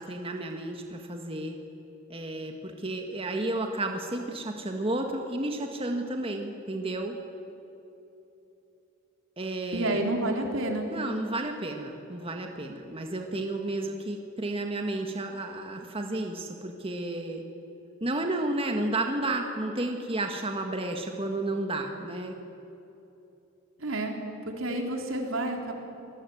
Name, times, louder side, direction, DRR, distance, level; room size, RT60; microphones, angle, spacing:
voice 1, 0.0-1.6 2.1-7.2 9.4-10.0 10.9-17.4 18.0-22.3, right 2 dB, 30° right, 3 dB, 1.8 m, -32 dB
voice 2, 9.7-10.9 23.8-24.2 24.5-25.7, right 1 dB, 85° right, 2 dB, 4.0 m, -29 dB
25.5 x 20.0 x 9.4 m, 2.9 s
head